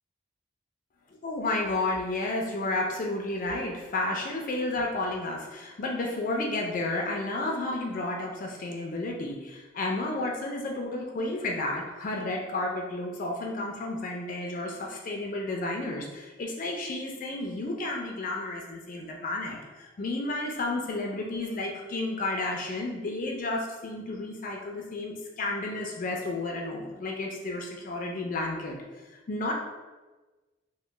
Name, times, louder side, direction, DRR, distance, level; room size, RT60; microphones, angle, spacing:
voice 1, 1.2-28.8 29.1-29.5, left 2 dB, 45° left, 0 dB, 0.4 m, -32 dB
2.9 x 2.1 x 3.2 m, 1.2 s
head